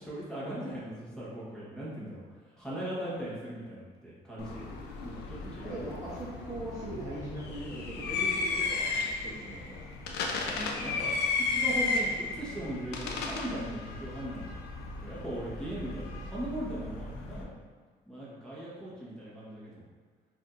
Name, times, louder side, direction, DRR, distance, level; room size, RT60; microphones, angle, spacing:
voice 1, 0.0-4.7 5.0-5.9 10.2-14.5 15.0-17.6 18.1-19.8, right 1 dB, 5° left, -8 dB, 1.2 m, -39 dB
sound 1, 4.4-17.4, left 3 dB, 80° left, 0.5 m, -34 dB
voice 2, 5.6-9.8, right 1 dB, 20° right, -9 dB, 0.9 m, -40 dB
4.9 x 2.7 x 2.5 m, 1.5 s
cardioid pair, 110°, 17 cm